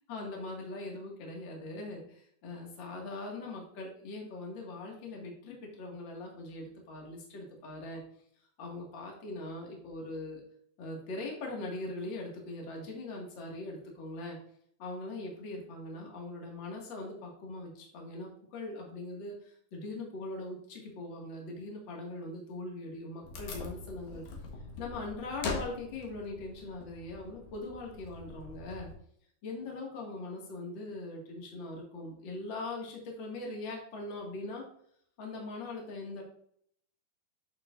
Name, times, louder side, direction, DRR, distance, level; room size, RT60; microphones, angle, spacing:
voice 1, 0.1-8.0 8.6-10.4 10.8-14.4 14.8-24.2 24.8-28.9 29.4-34.6 35.2-36.2, left 2 dB, 45° left, -1 dB, 1.6 m, -41 dB
Wood, 23.2-28.9, left 4 dB, 65° left, 1.9 m, -42 dB
8.8 x 6.8 x 2.5 m, 0.66 s
omnidirectional pair, 5.0 m